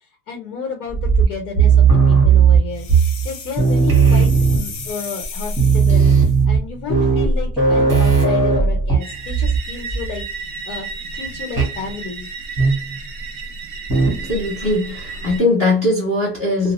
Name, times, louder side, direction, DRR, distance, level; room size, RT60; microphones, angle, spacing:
voice 1, 0.3-2.9 3.2-10.2 10.6-10.9 11.1-12.3, left 5 dB, 75° left, 1.1 m, -32 dB
sound 1, 0.9-3.3 3.6-4.9 5.2-5.3 5.5-9.6 9.9-10.2 11.6-11.8 12.6-13.0 13.9-14.3, right 5 dB, 5° right, 0.9 m, -15 dB
sound 2, 2.7-6.4, left 5 dB, 55° left, 0.7 m, -35 dB
sound 3, 9.0-15.4, right 4 dB, 35° right, 0.6 m, -32 dB
voice 2, 14.0-16.7, left 2 dB, 15° left, 0.5 m, -20 dB
2.3 x 2.0 x 3.0 m
supercardioid pair, 180°, 45 cm